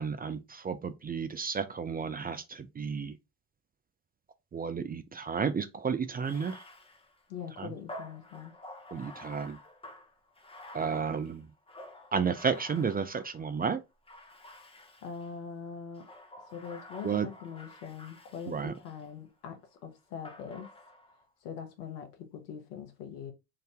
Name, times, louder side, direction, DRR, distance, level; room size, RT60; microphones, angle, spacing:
voice 1, 0.0-3.2 4.5-6.6 7.6-7.7 8.9-9.6 10.7-11.5 12.1-13.8 17.0-17.3 18.5-18.7, right 6 dB, 20° right, 0.4 m, -32 dB
Bathtub (filling or washing), 6.1-13.5 14.0-15.3 15.9-19.1 20.2-21.2, left 1 dB, 10° left, 0.9 m, -50 dB
voice 2, 7.3-8.5 15.0-16.1 16.5-20.7 21.4-23.3, left 7 dB, 85° left, 1.0 m, -42 dB
3.9 x 2.6 x 3.3 m
hypercardioid pair, 60°, 46 cm